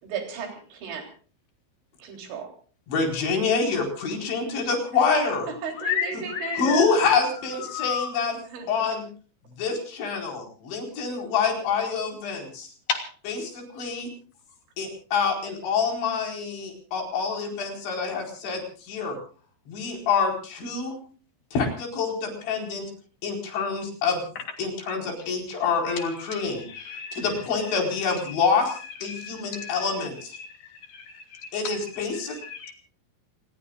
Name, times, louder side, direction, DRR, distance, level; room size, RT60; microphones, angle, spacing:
voice 1, 0.0-1.1 2.0-2.5 4.9-6.7 8.5-8.7, right 6 dB, 90° right, 3 dB, 5.8 m, -36 dB
voice 2, 2.9-5.5 6.1-6.2 6.6-8.4 8.7-9.0 9.6-12.7 13.3-14.1 14.8-19.2 19.7-21.0 21.5-22.9 23.2-24.2 24.6-30.4 31.5-32.4, left 5 dB, 85° left, 2 dB, 6.9 m, -26 dB
voice 3, 5.8-7.1 7.7-8.1 12.9-13.1 25.9-27.2 27.7-27.8 28.1-28.4 29.1-29.9 30.4-30.5 30.9-31.5 32.1-32.7, left 7 dB, 55° left, 4 dB, 4.5 m, -33 dB
28.0 x 20.5 x 2.4 m, 0.41 s
omnidirectional pair, 5.1 m